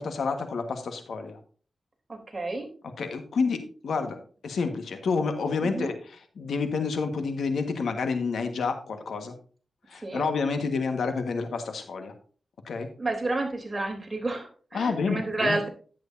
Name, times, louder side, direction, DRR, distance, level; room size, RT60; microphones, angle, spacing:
voice 1, 0.0-1.4 2.8-9.3 9.9-12.1 12.6-12.9 14.7-15.6, left 4 dB, 85° left, 6 dB, 1.5 m, -29 dB
voice 2, 2.1-2.7 5.6-5.9 10.0-10.3 13.0-15.7, right 2 dB, 30° right, 2 dB, 3.4 m, -30 dB
10.5 x 9.3 x 2.7 m, 0.39 s
cardioid pair, 65°, 0 cm